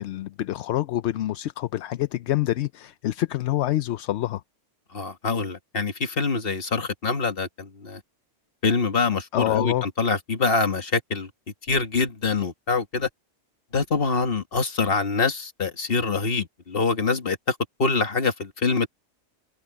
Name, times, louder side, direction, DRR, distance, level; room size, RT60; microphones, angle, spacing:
voice 1, 0.0-4.4 9.3-9.8, left 13 dB, 65° left, 0.8 m, -26 dB
voice 2, 4.9-8.0 8.6-11.3 11.7-13.1 13.7-18.9, left 4 dB, 45° left, 1.8 m, -25 dB
omnidirectional pair, 1.4 m